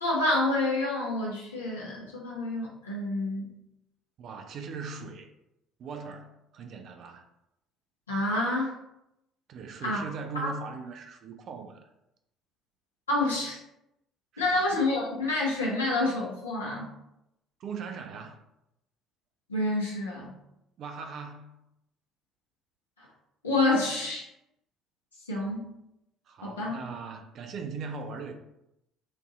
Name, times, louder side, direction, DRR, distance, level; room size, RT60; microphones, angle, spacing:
voice 1, 0.0-3.5 8.1-8.7 9.8-10.0 13.1-13.6 14.4-16.9 19.5-20.3 23.0-23.1 23.4-24.3 25.3-25.7 26.4-26.8, left 2 dB, 85° left, 1.1 m, -28 dB
voice 2, 4.2-5.3 5.8-7.3 9.5-11.9 14.3-14.7 17.6-18.4 20.8-21.6 26.3-28.3, right 5 dB, 50° right, 0.6 m, -40 dB
4.4 x 2.7 x 3.7 m
figure-of-eight pair, 55°, 0 cm